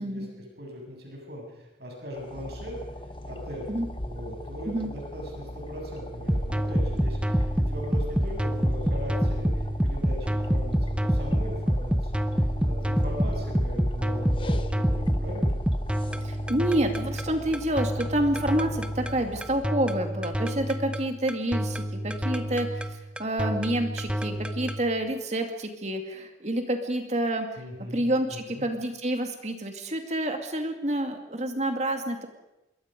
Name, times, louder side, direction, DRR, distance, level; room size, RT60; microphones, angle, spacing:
voice 1, 0.0-2.8 3.3-12.3 12.6-15.6 27.6-28.7, equal, 65° right, 0 dB, 7.4 m, -39 dB
sound 1, 2.1-19.6, left 1 dB, 30° left, 1.1 m, -40 dB
sound 2, 6.3-24.8, equal, 5° right, 0.9 m, -27 dB
voice 2, 16.2-22.8 23.2-27.5 27.9-32.3, right 1 dB, 40° right, 5 dB, 2.4 m, -28 dB
26.0 x 22.5 x 5.3 m, 0.91 s
head